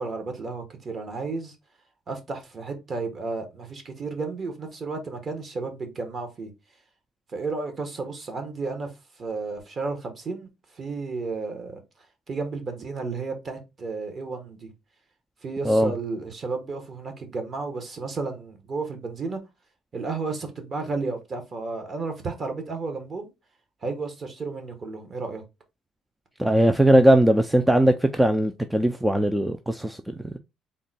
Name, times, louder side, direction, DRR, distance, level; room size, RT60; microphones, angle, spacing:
voice 1, 0.0-1.5 2.1-6.5 7.3-8.9 9.2-11.8 12.3-14.7 15.4-19.4 19.9-23.3 23.8-25.4, right 3 dB, 40° right, 1.1 m, -32 dB
voice 2, 26.4-30.4, right 1 dB, 5° right, 0.3 m, -20 dB
3.7 x 2.2 x 4.0 m
cardioid pair, 110°, 0 cm